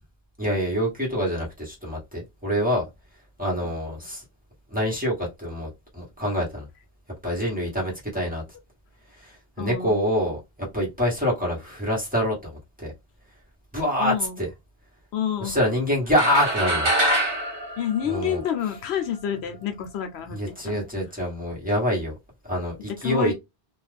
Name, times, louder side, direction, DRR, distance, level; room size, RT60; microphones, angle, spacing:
voice 1, 0.4-2.8 3.4-4.2 4.7-6.7 7.2-8.4 9.1-12.9 13.7-14.5 15.4-16.9 18.0-18.4 20.3-22.1 22.4-23.3, equal, 10° right, 1.1 m, -26 dB
voice 2, 9.6-10.0 14.0-14.4 15.1-15.6 17.8-20.4 20.6-20.8 23.0-23.3, left 9 dB, 80° left, 0.9 m, -28 dB
sound 1, 16.1-18.7, right 1 dB, 55° right, 1.2 m, -25 dB
2.4 x 2.4 x 3.3 m
omnidirectional pair, 1.1 m